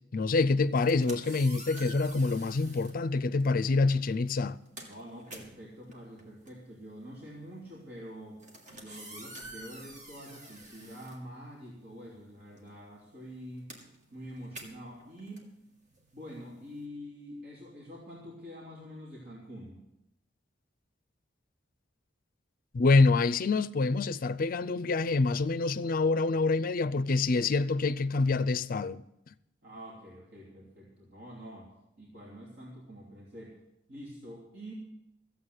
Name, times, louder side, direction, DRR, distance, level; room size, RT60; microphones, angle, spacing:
voice 1, 0.1-4.6 22.7-29.0, left 3 dB, 50° left, 0.5 m, -26 dB
sound 1, 0.6-3.0 3.9-4.1 4.4-11.9 12.2-16.8, right 1 dB, 45° right, 2.4 m, -49 dB
voice 2, 4.8-13.7 14.1-15.6 16.1-19.8 29.6-33.6 33.9-34.7, equal, 60° right, 3.1 m, -46 dB
14.5 x 8.2 x 8.0 m
head